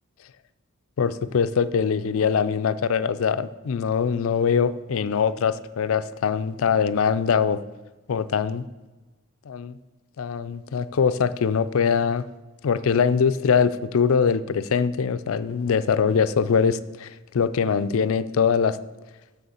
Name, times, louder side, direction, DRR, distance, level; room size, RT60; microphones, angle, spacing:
voice 1, 1.0-7.6 8.1-8.6 9.5-9.8 10.2-12.2 12.6-18.8, left 6 dB, 75° left, 15 dB, 0.4 m, -22 dB
7.2 x 6.5 x 7.1 m, 1.2 s
head